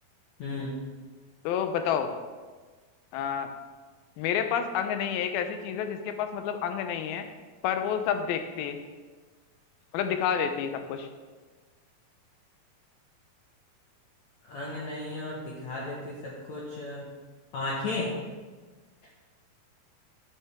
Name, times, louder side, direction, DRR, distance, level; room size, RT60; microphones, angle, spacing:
voice 1, 0.4-0.7 14.5-17.1 17.5-18.1, left 2 dB, 60° left, -4 dB, 2.2 m, -34 dB
voice 2, 1.4-2.1 3.1-3.5 4.2-7.3 7.6-8.8 9.9-11.1, left 8 dB, 80° left, 8 dB, 2.6 m, -29 dB
11.0 x 8.7 x 3.5 m, 1.4 s
omnidirectional pair, 4.3 m